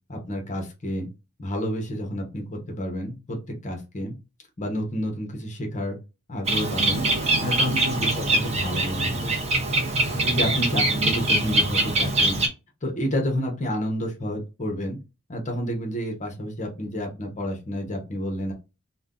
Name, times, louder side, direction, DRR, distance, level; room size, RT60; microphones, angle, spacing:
voice 1, 0.1-1.1 1.4-3.4 3.6-4.1 4.6-6.0 6.3-7.1 7.4-9.3 10.2-12.4 12.8-15.0 15.3-18.5, equal, 35° left, 2 dB, 0.8 m, -30 dB
Bird, 6.5-12.5, right 2 dB, 30° right, 0.6 m, -23 dB
2.5 x 2.1 x 3.5 m, 0.27 s
head